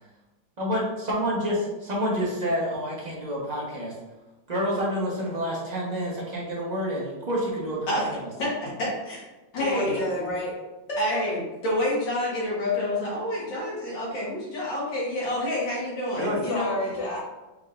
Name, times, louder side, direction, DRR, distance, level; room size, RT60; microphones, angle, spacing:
voice 1, 0.6-3.9 4.5-8.3 16.2-16.4, equal, 30° right, -5 dB, 0.9 m, -28 dB
voice 2, 8.4-9.2 9.5-10.0 11.0-16.8, left 1 dB, 70° left, -5 dB, 2.1 m, -28 dB
voice 3, 9.5-10.5 10.9-11.3 16.5-17.2, left 1 dB, 40° left, -4 dB, 1.3 m, -29 dB
5.0 x 3.7 x 2.5 m, 1.1 s
omnidirectional pair, 2.1 m